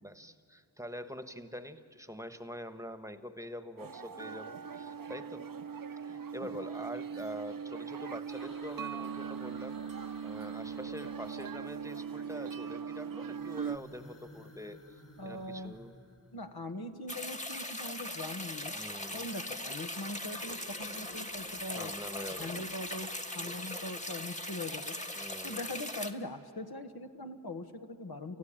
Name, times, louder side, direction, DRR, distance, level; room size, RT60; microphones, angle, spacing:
voice 1, 0.0-5.5 6.0-15.9 18.7-19.2 21.6-22.7 23.4-23.8 25.1-25.6, equal, 10° right, 9 dB, 1.2 m, -45 dB
sound 1, 3.8-13.8, right 7 dB, 60° right, 0.7 m, -40 dB
sound 2, 8.3-12.2 13.0-16.7 18.1-19.2 19.6-24.6, left 1 dB, 50° left, 3.1 m, -56 dB
voice 2, 15.2-15.8 16.3-18.7 19.1-22.0 22.4-24.9 25.4-28.4, left 2 dB, 70° left, 7 dB, 1.4 m, -41 dB
sound 3, 17.1-26.1, left 1 dB, 20° left, 1.4 m, -40 dB
30.0 x 14.5 x 8.9 m, 2.5 s
wide cardioid pair, 50°, 39 cm